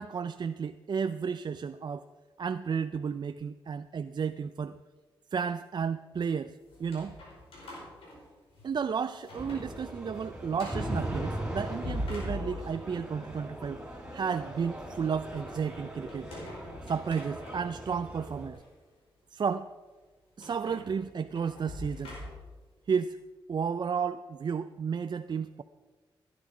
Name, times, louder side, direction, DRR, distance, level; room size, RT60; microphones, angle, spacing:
voice 1, 0.0-2.1 2.4-4.8 5.3-7.2 8.6-13.8 14.1-16.3 16.8-18.6 19.3-19.7 20.4-22.2 22.9-23.2 23.5-25.6, right 6 dB, 55° right, 10 dB, 0.5 m, -32 dB
sound 1, 6.7-8.8 9.2-9.7 10.1-10.2 10.6-11.0 11.6-12.9 16.1-17.9 18.5-18.6 20.4-22.6, left 1 dB, 90° left, 4.9 m, -42 dB
sound 2, 9.4-18.5, right 1 dB, 10° right, 3.8 m, -39 dB
15.5 x 10.5 x 5.0 m, 1.3 s
cardioid pair, 60°, 9 cm